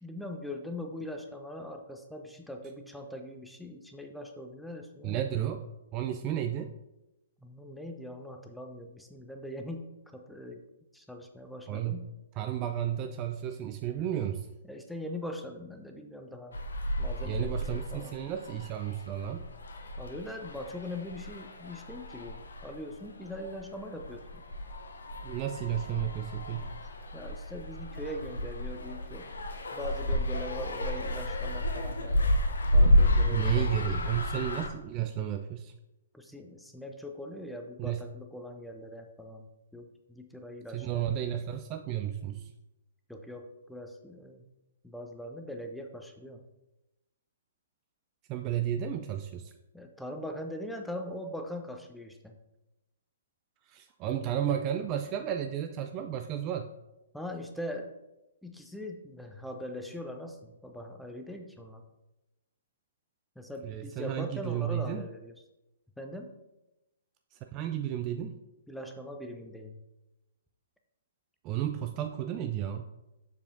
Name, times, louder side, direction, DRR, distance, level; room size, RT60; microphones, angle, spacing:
voice 1, 0.0-5.2 7.4-10.6 10.9-12.0 14.6-16.6 17.0-18.1 20.0-24.4 27.1-29.3 29.7-32.2 32.7-33.9 36.1-41.0 43.1-44.4 44.8-46.4 49.7-52.4 57.1-57.9 58.4-61.8 63.4-65.4 66.0-66.3 68.7-69.8, left 1 dB, ahead, 4 dB, 0.7 m, -41 dB
voice 2, 5.0-5.6 5.9-6.7 11.7-12.0 12.4-14.5 17.2-19.4 25.2-26.7 33.3-35.7 37.8-38.0 40.7-42.5 48.3-49.5 53.7-56.7 63.6-65.1 67.3-68.4 71.4-72.9, right 10 dB, 30° right, 6 dB, 0.4 m, -33 dB
sound 1, 16.5-34.7, left 1 dB, 65° left, 0.8 m, -31 dB
7.2 x 6.7 x 2.6 m, 0.97 s
figure-of-eight pair, 120°, 0 cm